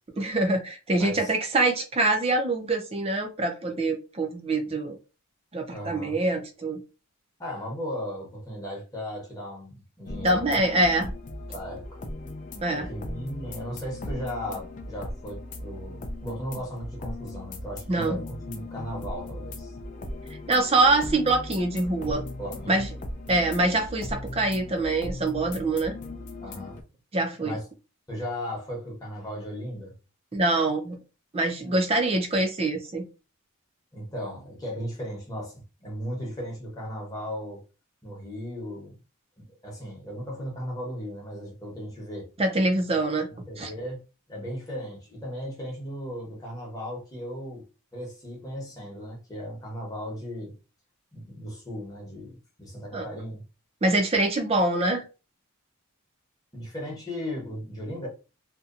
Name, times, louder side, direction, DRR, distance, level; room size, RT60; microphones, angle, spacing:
voice 1, 0.2-5.0 5.5-6.8 10.2-11.1 12.6-12.9 17.9-18.2 20.5-22.2 22.7-22.9 23.3-25.9 27.1-27.6 30.3-31.0 31.3-33.0 42.4-43.3 43.6-43.7 52.9-53.1 53.8-55.0, right 2 dB, 25° right, 0.5 m, -24 dB
voice 2, 1.0-1.3 5.7-6.2 7.4-10.6 11.5-12.0 12.7-19.7 22.4-22.8 26.4-26.8 27.4-27.6 28.1-29.9 33.9-37.6 38.0-39.0 39.5-42.3 42.9-44.0 44.3-47.6 47.9-50.5 51.1-53.4 56.5-58.1, equal, 15° left, 0.9 m, -36 dB
sound 1, 10.1-26.8, left 1 dB, 35° left, 0.3 m, -38 dB
2.7 x 2.2 x 2.4 m
head